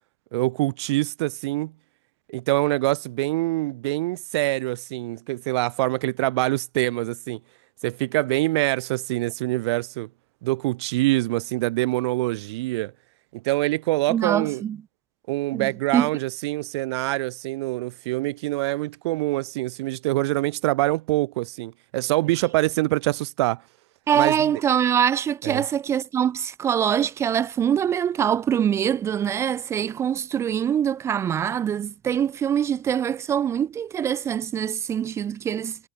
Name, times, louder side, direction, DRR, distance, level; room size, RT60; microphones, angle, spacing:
voice 1, 0.3-1.7 2.3-7.4 7.8-10.1 10.4-12.9 13.3-14.6 15.3-23.6 24.1-24.5 25.4-25.6, right 19 dB, 60° right, 4.3 m, -25 dB
voice 2, 14.1-14.8 15.5-16.1 24.1-35.8, right 9 dB, 15° right, 0.8 m, -24 dB
supercardioid pair, 170°, 16 cm